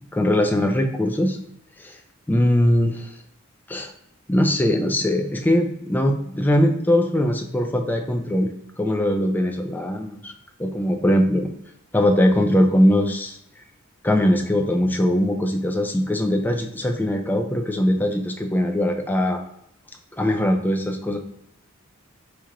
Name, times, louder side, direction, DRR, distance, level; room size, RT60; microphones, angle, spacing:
voice 1, 0.1-1.4 1.8-2.0 2.3-3.1 3.7-3.9 4.3-8.5 8.8-10.3 10.6-11.5 11.9-13.4 14.0-19.4 20.2-21.2, left 1 dB, 10° left, 4 dB, 0.3 m, -21 dB
4.3 x 2.4 x 2.9 m, 0.76 s
head